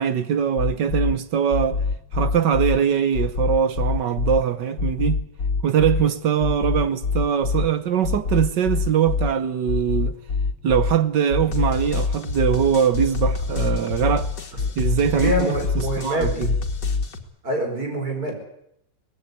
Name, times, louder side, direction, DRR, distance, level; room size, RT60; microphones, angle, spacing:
voice 1, 0.0-1.8 2.1-5.2 5.6-10.1 10.6-14.3 14.8-16.5, right 8 dB, 75° right, 1.7 m, -22 dB
sound 1, 0.6-1.1 1.5-2.8 3.1-4.4 4.8-6.0 6.4-7.7 8.0-9.3 9.7-10.9 11.3-17.2, left 4 dB, 70° left, 2.8 m, -25 dB
voice 2, 15.1-16.5 17.4-18.3, right 1 dB, 55° right, 5.6 m, -25 dB
19.5 x 16.0 x 9.7 m
omnidirectional pair, 1.9 m